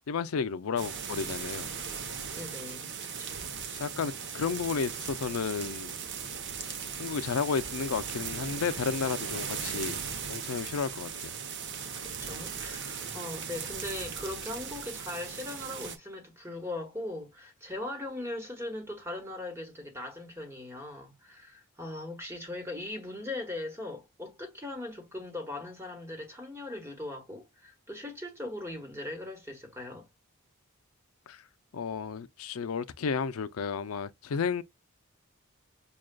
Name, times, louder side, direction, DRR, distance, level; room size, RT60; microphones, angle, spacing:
voice 1, 0.1-1.7 3.7-5.9 7.0-10.0 10.3-11.3 31.3-31.4 31.7-34.6, left 5 dB, 75° left, 0.4 m, -32 dB
sound 1, 0.8-16.0, right 6 dB, 55° right, 0.8 m, -38 dB
voice 2, 2.3-3.5 12.0-30.1, left 2 dB, 10° right, 1.3 m, -39 dB
6.2 x 2.3 x 2.2 m
head